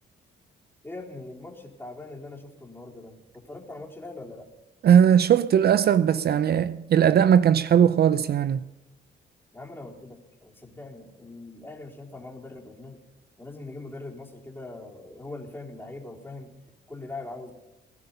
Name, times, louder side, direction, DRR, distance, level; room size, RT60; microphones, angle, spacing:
voice 1, 0.8-4.5 9.5-13.1 13.4-16.5 16.9-17.5, left 2 dB, 10° left, 3.9 m, -41 dB
voice 2, 4.8-8.7, right 9 dB, 55° right, 0.6 m, -19 dB
20.5 x 11.0 x 5.6 m
cardioid pair, 90°, 20 cm